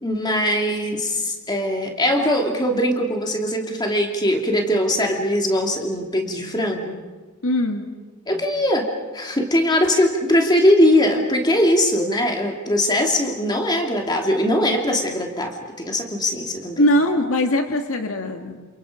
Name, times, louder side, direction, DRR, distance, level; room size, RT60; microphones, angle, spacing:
voice 1, 0.0-7.0 8.3-16.8, left 1 dB, 20° left, 2 dB, 2.7 m, -21 dB
voice 2, 7.4-7.9 16.8-18.7, left 1 dB, 70° left, 5 dB, 1.8 m, -21 dB
28.5 x 28.0 x 5.0 m, 1.3 s
head